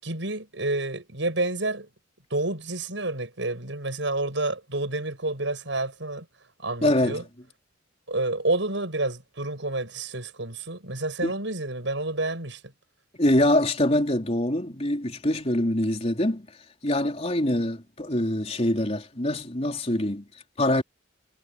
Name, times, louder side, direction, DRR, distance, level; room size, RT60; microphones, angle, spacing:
voice 1, 0.0-1.9 2.3-6.3 6.6-7.2 8.1-12.6, right 2 dB, 70° right, 6.5 m, -29 dB
voice 2, 6.8-7.2 11.2-11.3 13.1-16.5 16.8-20.3 20.6-20.8, left 1 dB, 35° left, 3.8 m, -24 dB
head